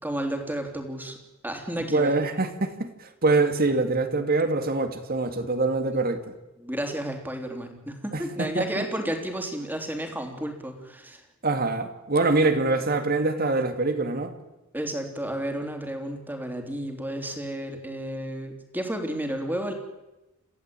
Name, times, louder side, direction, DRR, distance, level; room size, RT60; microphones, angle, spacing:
voice 1, 0.0-1.2 1.4-2.1 6.6-11.2 14.7-19.7, right 1 dB, 10° right, 3.5 m, -32 dB
voice 2, 1.9-2.9 3.2-6.3 8.1-8.8 11.4-14.3, right 3 dB, 45° right, 2.3 m, -24 dB
28.0 x 15.0 x 9.0 m
head